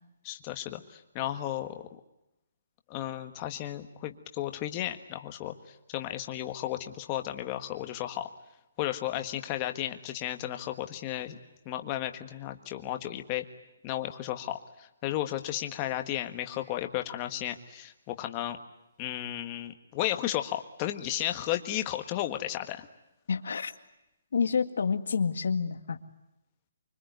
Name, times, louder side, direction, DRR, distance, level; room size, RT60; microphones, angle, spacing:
voice 1, 0.2-1.9 2.9-8.3 8.8-11.4 11.6-13.4 13.8-18.6 19.0-22.9, left 13 dB, 20° left, 7 dB, 1.5 m, -34 dB
voice 2, 23.3-23.7 24.3-26.0, left 5 dB, 65° left, 7 dB, 2.0 m, -28 dB
25.0 x 25.0 x 9.4 m, 0.89 s
hypercardioid pair, 175°, 0 cm